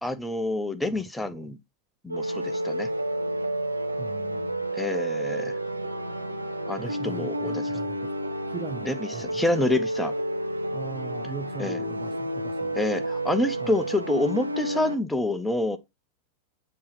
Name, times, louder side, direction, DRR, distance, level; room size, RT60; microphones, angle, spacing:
voice 1, 0.0-1.6 2.0-2.9 4.7-5.5 6.7-7.7 8.8-10.1 11.6-11.8 12.7-15.8, left 2 dB, 5° left, 0.8 m, -27 dB
voice 2, 0.9-1.5 4.0-4.4 6.8-8.1 8.5-9.4 10.7-12.8 13.6-13.8, right 6 dB, 20° right, 0.5 m, -40 dB
sound 1, 2.1-15.0, right 1 dB, 85° right, 0.6 m, -30 dB
7.2 x 3.0 x 4.6 m
figure-of-eight pair, 90°, 0 cm